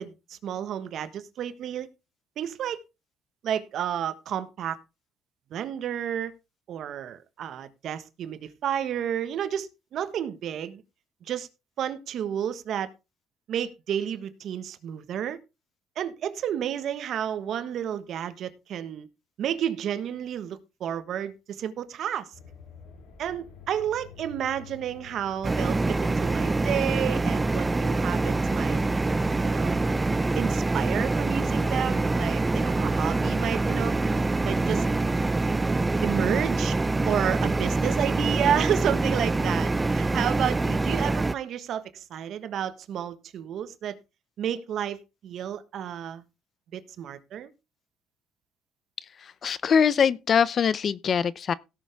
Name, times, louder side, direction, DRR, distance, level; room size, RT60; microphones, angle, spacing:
voice 1, 0.0-1.9 2.4-2.8 3.4-4.8 5.5-6.3 6.7-10.8 11.2-11.5 11.8-12.9 13.5-15.4 15.9-19.1 19.4-22.3 23.2-28.8 29.4-29.7 30.3-33.9 34.4-34.9 36.0-36.8 37.0-44.0 44.4-46.2 46.7-47.5, right 9 dB, 60° right, 1.4 m, -31 dB
sound 1, 22.3-32.6, left 5 dB, 85° left, 4.6 m, -49 dB
sound 2, 25.4-41.3, right 2 dB, 15° right, 0.5 m, -25 dB
voice 2, 49.2-51.5, left 7 dB, 40° left, 0.6 m, -23 dB
17.0 x 6.8 x 3.5 m
cardioid pair, 120°, 0 cm